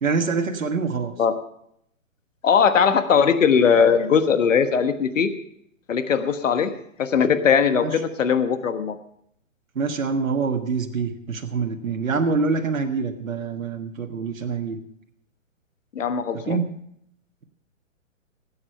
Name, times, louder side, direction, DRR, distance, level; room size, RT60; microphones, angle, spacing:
voice 1, 0.0-1.1 7.8-8.0 9.8-14.8 16.3-16.7, right 4 dB, 80° right, 4 dB, 1.6 m, -25 dB
voice 2, 2.4-5.3 5.9-6.7 7.0-9.0 15.9-16.6, left 6 dB, 70° left, 9 dB, 1.4 m, -19 dB
17.0 x 8.7 x 5.5 m, 0.72 s
hypercardioid pair, 130°, 40 cm